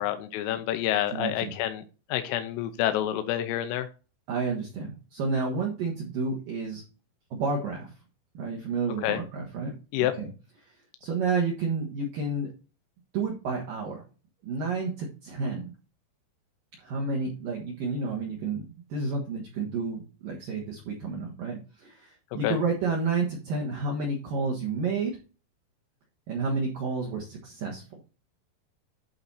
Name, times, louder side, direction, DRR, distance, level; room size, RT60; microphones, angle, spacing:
voice 1, 0.0-1.8 2.1-3.9 9.0-9.2 9.9-10.1 22.4-22.6, left 12 dB, 90° left, 9 dB, 3.3 m, -28 dB
voice 2, 1.1-1.5 4.3-6.8 7.3-7.9 8.3-10.3 11.0-12.5 13.1-14.0 14.4-15.7 16.8-25.2 26.3-27.8, right 4 dB, 60° right, -2 dB, 2.4 m, -30 dB
11.5 x 4.1 x 4.2 m, 0.33 s
omnidirectional pair, 5.9 m